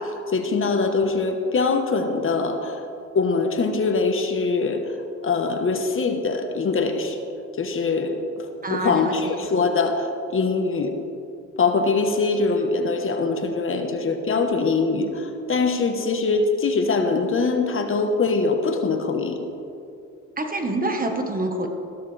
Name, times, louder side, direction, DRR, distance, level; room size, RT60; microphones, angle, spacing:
voice 1, 0.0-2.8 3.1-4.9 5.2-7.2 7.6-11.0 11.6-19.4, left 4 dB, 45° left, 5 dB, 1.2 m, -23 dB
voice 2, 8.6-9.1 20.4-21.7, right 2 dB, 30° right, 4 dB, 1.4 m, -26 dB
14.5 x 12.5 x 3.4 m, 2.6 s
cardioid pair, 90°, 30 cm